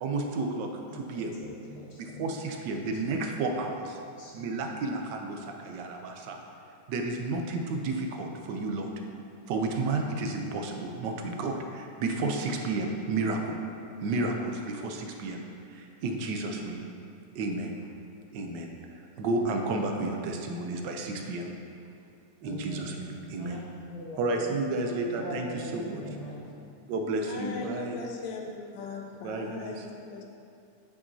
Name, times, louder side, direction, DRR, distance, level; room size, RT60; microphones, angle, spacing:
voice 1, 0.0-1.4 2.0-4.0 4.3-6.4 6.9-8.9 9.5-13.6 14.0-15.4 15.7-16.8 17.3-17.8 18.3-18.7 19.2-21.5 22.4-23.6 24.2-26.0 26.9-28.0 29.2-29.9, right 2 dB, 80° right, 3 dB, 1.3 m, -32 dB
voice 2, 1.4-2.3 4.2-4.5 22.4-24.2 24.9-26.4, left 1 dB, 45° left, -4 dB, 1.3 m, -42 dB
voice 3, 27.3-30.2, left 3 dB, 90° left, 1 dB, 1.4 m, -39 dB
8.7 x 5.8 x 2.7 m, 2.5 s
omnidirectional pair, 1.9 m